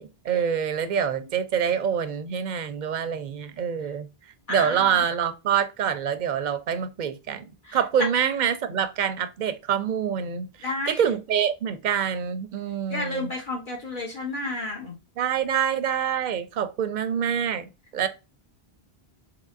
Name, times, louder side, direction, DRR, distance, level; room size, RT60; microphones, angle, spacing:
voice 1, 0.0-4.1 4.5-13.3 15.2-18.1, right 8 dB, 60° right, 0.6 m, -26 dB
voice 2, 4.5-4.8 7.7-7.8 10.6-11.0 12.9-14.9, left 2 dB, 55° left, 1.2 m, -31 dB
3.6 x 3.1 x 2.4 m
omnidirectional pair, 1.0 m